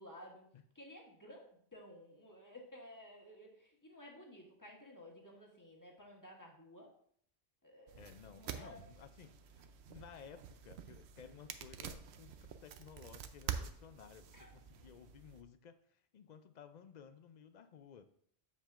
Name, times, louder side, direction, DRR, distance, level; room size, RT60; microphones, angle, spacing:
voice 1, 0.0-0.4 0.7-6.9 7.6-8.1 8.3-8.8 14.3-14.5, left 1 dB, 20° left, 0 dB, 1.3 m, -55 dB
sound 1, 7.9-15.4, right 8 dB, 85° right, 0.8 m, -47 dB
voice 2, 8.0-18.0, left 7 dB, 55° left, 10 dB, 0.5 m, -56 dB
7.3 x 7.2 x 2.5 m, 0.63 s
omnidirectional pair, 1.1 m